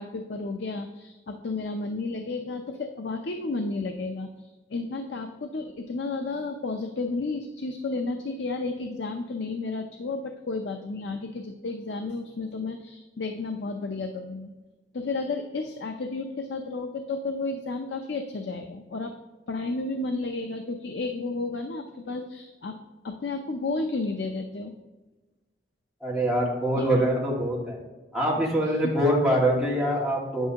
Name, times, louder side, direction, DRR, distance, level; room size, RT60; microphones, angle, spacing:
voice 1, 0.0-14.5 14.9-19.1 19.5-22.8 23.0-24.7 26.9-27.0, left 3 dB, 75° left, 6 dB, 0.6 m, -32 dB
voice 2, 26.0-27.8 28.1-30.5, equal, ahead, -6 dB, 2.0 m, -24 dB
9.3 x 8.1 x 2.9 m, 1.2 s
head